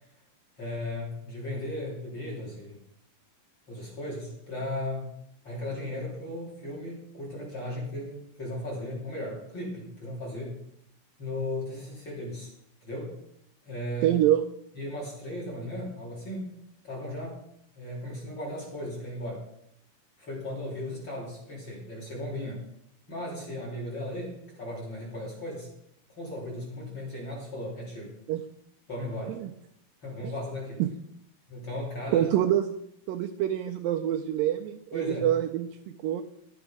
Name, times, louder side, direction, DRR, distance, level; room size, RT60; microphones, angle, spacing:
voice 1, 0.6-2.8 3.7-5.1 5.4-10.6 11.2-12.5 12.8-13.2 13.6-14.2 14.7-16.5 16.8-17.4 17.8-19.5 20.2-22.6 23.1-25.7 26.2-28.2 28.9-29.4 30.0-30.8 31.5-32.3 34.9-35.3, left 1 dB, 30° left, -4 dB, 3.1 m, -36 dB
voice 2, 14.0-14.4 28.3-28.4 29.3-29.5 30.8-30.9 32.1-32.7 33.1-36.2, right 12 dB, 90° right, 4 dB, 2.0 m, -26 dB
11.5 x 8.0 x 5.0 m, 0.74 s
omnidirectional pair, 4.6 m